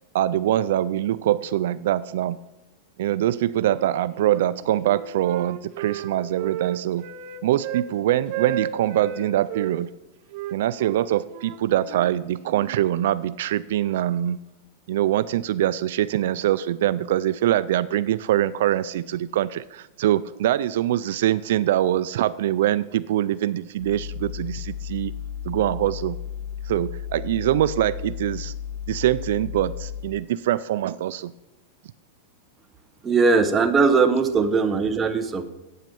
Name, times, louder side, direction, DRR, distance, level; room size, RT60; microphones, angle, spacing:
voice 1, 0.1-2.4 3.0-7.1 7.4-9.9 10.5-14.4 14.9-25.1 25.4-26.2 26.6-28.5 28.9-31.3, right 12 dB, 70° right, 15 dB, 0.4 m, -23 dB
Wind instrument woodwind instrument, 3.6-4.5 4.8-7.9 8.3-9.7 10.3-12.8, right 10 dB, 45° right, 0.9 m, -34 dB
sound 1, 23.8-30.0, left 9 dB, 50° left, 3.6 m, -34 dB
voice 2, 33.0-35.5, right 4 dB, 15° right, 7 dB, 0.9 m, -20 dB
9.2 x 8.6 x 6.9 m, 1.0 s
supercardioid pair, 155°, 0 cm